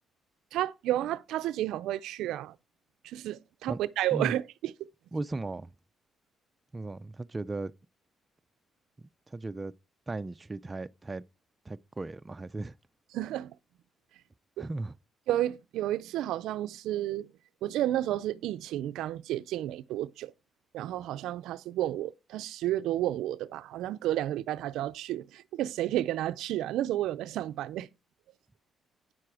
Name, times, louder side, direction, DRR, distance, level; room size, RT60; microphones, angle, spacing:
voice 1, 0.5-2.6 3.0-4.7 13.1-13.5 14.6-14.7 15.3-17.3 17.6-20.3 20.7-27.9, right 13 dB, 90° right, 0.4 m, -31 dB
voice 2, 5.1-5.7 6.7-7.7 9.3-9.7 10.1-11.2 11.7-12.7 14.6-14.9, right 2 dB, 25° right, 0.4 m, -36 dB
9.6 x 7.5 x 4.7 m
cardioid pair, 90°, 0 cm